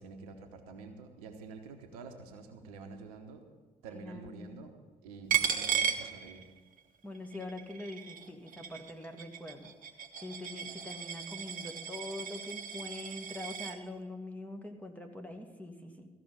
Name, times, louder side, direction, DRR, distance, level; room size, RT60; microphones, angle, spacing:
voice 1, 0.0-3.5 3.8-4.7 5.0-6.5, right 4 dB, 75° right, 6 dB, 1.0 m, -48 dB
voice 2, 3.9-4.6 7.0-9.7 10.2-16.1, left 2 dB, 10° left, 3 dB, 1.9 m, -44 dB
Coin (dropping), 5.3-6.8 7.2-13.8, right 8 dB, 45° right, 1.0 m, -36 dB
14.5 x 6.0 x 8.7 m, 1.3 s
figure-of-eight pair, 45°, 19 cm